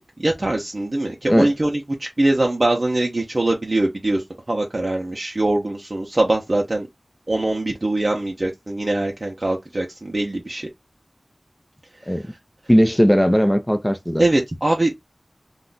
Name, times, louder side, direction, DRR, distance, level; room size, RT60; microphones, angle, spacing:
voice 1, 0.2-6.9 7.3-10.7 12.1-12.2 14.2-14.9, right 2 dB, 50° right, 0.6 m, -22 dB
voice 2, 12.7-14.2, equal, 10° left, 0.5 m, -17 dB
2.4 x 2.1 x 3.8 m
wide cardioid pair, 50°, 0 cm